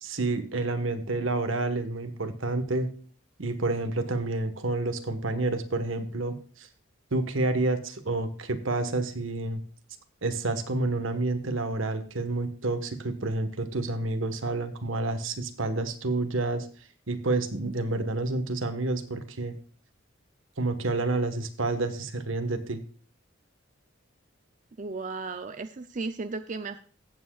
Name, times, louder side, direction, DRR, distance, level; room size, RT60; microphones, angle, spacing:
voice 1, 0.0-2.9 3.4-6.7 7.1-9.6 10.2-16.7 17.1-19.5 20.6-22.8, right 2 dB, 75° right, 8 dB, 1.4 m, -29 dB
voice 2, 24.8-26.8, right 3 dB, 40° right, 10 dB, 0.5 m, -35 dB
15.0 x 8.7 x 2.4 m, 0.44 s
head